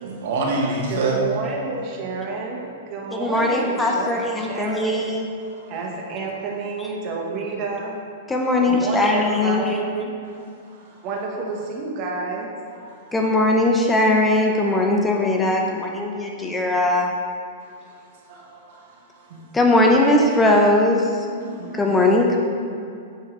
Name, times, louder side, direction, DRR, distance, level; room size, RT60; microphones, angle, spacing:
voice 1, 0.0-1.2 18.3-18.6 19.3-19.4 21.4-22.0, right 3 dB, 65° right, -1 dB, 1.1 m, -26 dB
voice 2, 0.9-5.0 5.7-8.0 8.6-10.1 11.0-12.5, right 3 dB, 45° right, -1 dB, 1.1 m, -30 dB
voice 3, 3.1-5.3 8.3-9.8 13.1-17.1 19.5-21.1 21.7-22.4, left 2 dB, 10° left, 0 dB, 0.6 m, -19 dB
9.0 x 3.5 x 3.2 m, 2.5 s
hypercardioid pair, 120°, 0 cm